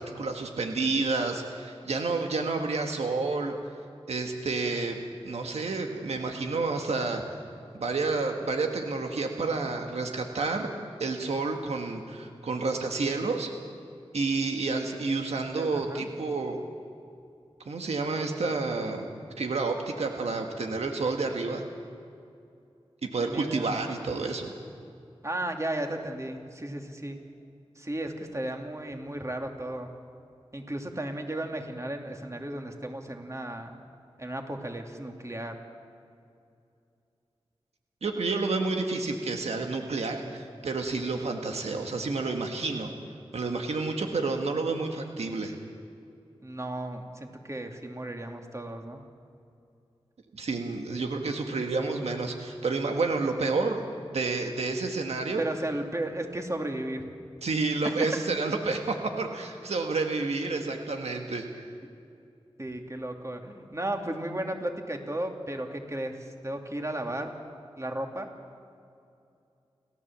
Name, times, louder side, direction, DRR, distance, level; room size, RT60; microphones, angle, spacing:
voice 1, 0.0-3.5 4.1-7.4 7.7-10.7 11.0-13.5 14.1-16.6 17.7-19.1 19.4-21.6 23.1-24.5 38.0-42.9 43.3-45.5 50.3-53.8 54.1-55.4 57.4-61.6, right 3 dB, 90° right, 3 dB, 1.6 m, -30 dB
voice 2, 15.6-16.1 23.3-23.7 25.2-27.2 27.8-29.9 30.5-33.8 34.2-35.6 46.4-49.0 55.4-57.0 57.8-57.9 62.6-66.2 66.4-67.3 67.8-68.3, right 1 dB, 30° right, 3 dB, 2.7 m, -34 dB
29.5 x 12.5 x 7.4 m, 2.5 s
cardioid pair, 40°, 11 cm